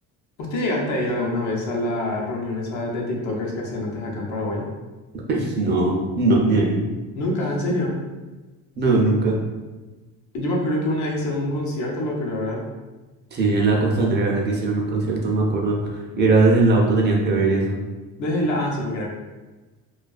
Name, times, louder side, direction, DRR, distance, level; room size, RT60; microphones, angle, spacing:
voice 1, 0.4-4.7 7.2-7.9 10.3-12.6 18.2-19.1, left 1 dB, 60° left, -2 dB, 0.7 m, -25 dB
voice 2, 5.3-6.9 8.8-9.4 13.3-17.8, right 2 dB, 35° right, -1 dB, 0.4 m, -20 dB
2.3 x 2.3 x 2.3 m, 1.2 s
cardioid pair, 120°, 33 cm